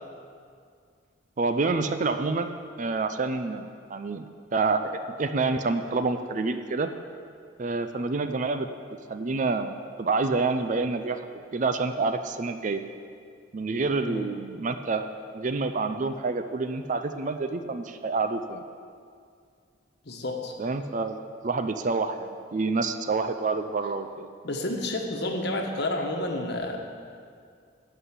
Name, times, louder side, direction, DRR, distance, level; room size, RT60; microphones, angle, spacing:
voice 1, 1.4-2.5 2.8-4.3 4.5-6.9 7.6-8.7 9.1-12.8 13.5-15.1 15.3-18.6 20.6-21.2 21.4-24.3, right 3 dB, 40° right, 8 dB, 0.4 m, -28 dB
voice 2, 20.0-20.5 24.4-26.8, left 1 dB, 60° left, 3 dB, 1.2 m, -30 dB
11.5 x 5.5 x 8.1 m, 2.2 s
head